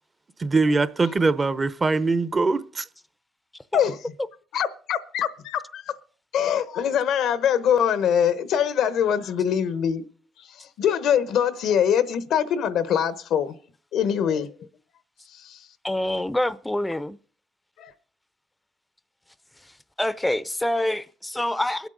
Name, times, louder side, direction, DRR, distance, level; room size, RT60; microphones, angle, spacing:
voice 1, 0.4-2.9, right 3 dB, 30° right, 0.8 m, -22 dB
voice 2, 4.5-5.8 6.3-10.0 10.4-13.5 13.9-14.5 15.3-15.6 17.8-17.9, left 8 dB, 80° left, 1.0 m, -23 dB
voice 3, 15.8-17.2 19.6-21.9, left 1 dB, 10° left, 0.6 m, -26 dB
23.0 x 8.2 x 3.9 m
cardioid pair, 90°, 0 cm